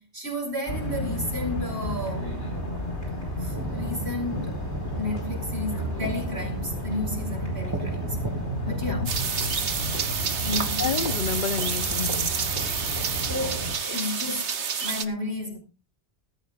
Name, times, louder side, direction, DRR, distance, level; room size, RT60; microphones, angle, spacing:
voice 1, 0.0-2.3 3.4-4.6 4.9-8.2 8.7-9.0 10.4-10.9 12.9-15.6, left 2 dB, 70° right, 5.4 m, -32 dB
sound 1, 0.7-13.8, equal, 85° left, 5.3 m, -32 dB
sound 2, 3.5-8.5, right 1 dB, 20° right, 1.9 m, -37 dB
voice 2, 8.7-9.1 10.8-12.3, left 6 dB, 50° left, 0.8 m, -30 dB
sound 3, 9.1-15.0, right 6 dB, 90° right, 1.5 m, -29 dB
18.5 x 14.0 x 2.5 m
omnidirectional pair, 1.1 m